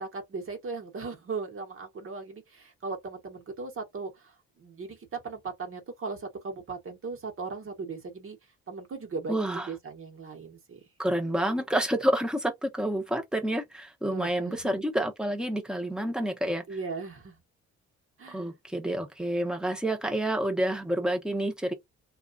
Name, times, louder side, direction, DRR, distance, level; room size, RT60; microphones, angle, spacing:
voice 1, 0.0-8.4 8.7-10.8 14.1-14.8 16.7-17.4 18.2-18.5, right 4 dB, 45° right, 1.2 m, -38 dB
voice 2, 9.3-9.7 11.0-16.6 18.3-21.7, right 1 dB, 5° right, 0.9 m, -29 dB
2.9 x 2.4 x 2.5 m
cardioid pair, 90°, 30 cm